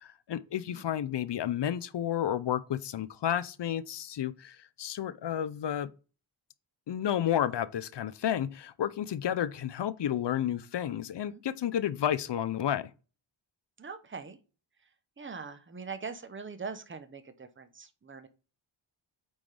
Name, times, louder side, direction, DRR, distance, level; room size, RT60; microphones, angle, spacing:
voice 1, 0.0-5.9 6.9-12.9, left 10 dB, 60° left, 0.5 m, -31 dB
voice 2, 13.8-14.4 15.2-18.3, right 5 dB, 25° right, 0.8 m, -42 dB
8.7 x 3.8 x 3.3 m
wide cardioid pair, 115°, 49 cm